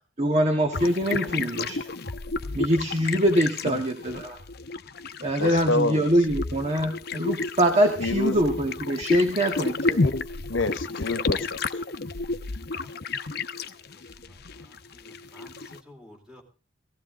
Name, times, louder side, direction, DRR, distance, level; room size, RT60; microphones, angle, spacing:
voice 1, 0.2-1.9 2.5-4.4 5.2-10.0, right 1 dB, 35° right, 1.6 m, -24 dB
sound 1, 0.7-15.8, left 3 dB, 55° left, 0.8 m, -31 dB
voice 2, 5.4-6.0 8.0-8.4 10.0-11.6, left 2 dB, 75° left, 1.1 m, -28 dB
voice 3, 13.7-16.4, left 1 dB, 5° right, 3.6 m, -53 dB
17.5 x 15.5 x 3.7 m
head